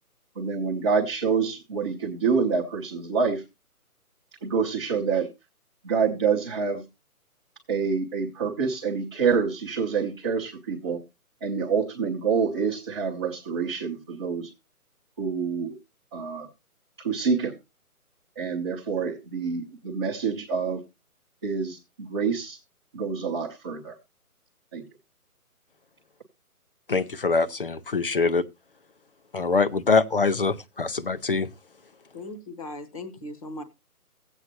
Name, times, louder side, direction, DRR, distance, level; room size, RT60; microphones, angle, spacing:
voice 1, 0.3-3.4 4.4-5.3 5.8-6.8 7.7-11.0 11.4-14.5 15.2-15.7 16.1-16.5 17.0-17.5 18.4-20.8 21.4-22.6 22.9-24.0 24.7-24.8, right 5 dB, 20° right, 0.9 m, -27 dB
voice 2, 26.9-28.4 29.3-31.5, left 4 dB, 40° left, 0.6 m, -24 dB
voice 3, 32.1-33.6, left 1 dB, 25° left, 1.0 m, -38 dB
16.0 x 8.1 x 2.8 m
figure-of-eight pair, 155°, 45 cm